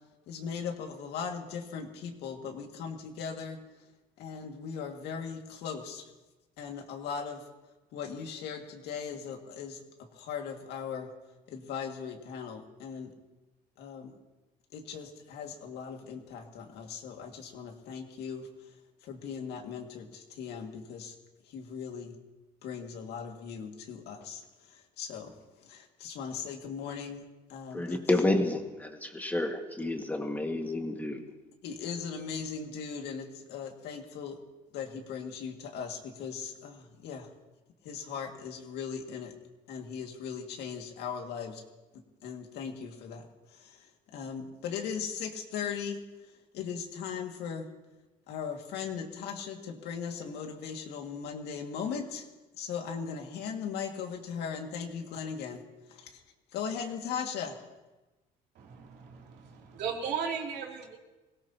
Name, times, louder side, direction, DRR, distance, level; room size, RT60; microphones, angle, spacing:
voice 1, 0.3-3.6 4.2-6.0 6.6-7.4 7.9-9.8 10.1-11.1 11.5-13.1 13.8-14.1 14.7-18.5 19.0-21.1 21.5-22.1 22.6-25.3 25.6-27.2 27.5-28.0 31.6-34.4 34.7-37.3 37.8-39.3 39.7-41.6 42.2-46.0 46.5-47.7 48.3-52.3 52.5-55.6 55.9-56.2 56.5-57.6, left 6 dB, 80° left, 3 dB, 2.1 m, -38 dB
voice 2, 27.7-31.2, left 2 dB, 10° left, 3 dB, 1.8 m, -30 dB
voice 3, 58.5-61.0, right 6 dB, 75° right, 0 dB, 2.9 m, -36 dB
24.5 x 17.5 x 2.9 m, 1.1 s
cardioid pair, 110°, 17 cm